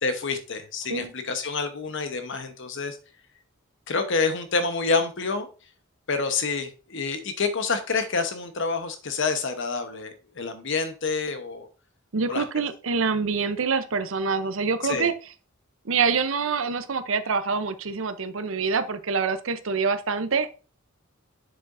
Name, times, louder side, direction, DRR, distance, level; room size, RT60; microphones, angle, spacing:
voice 1, 0.0-3.0 3.9-5.5 6.1-11.7 12.3-12.4 14.8-15.1, left 4 dB, 65° left, 9 dB, 1.0 m, -28 dB
voice 2, 12.1-15.1 15.9-20.5, right 5 dB, 70° right, 11 dB, 0.7 m, -26 dB
7.5 x 6.9 x 2.6 m, 0.36 s
head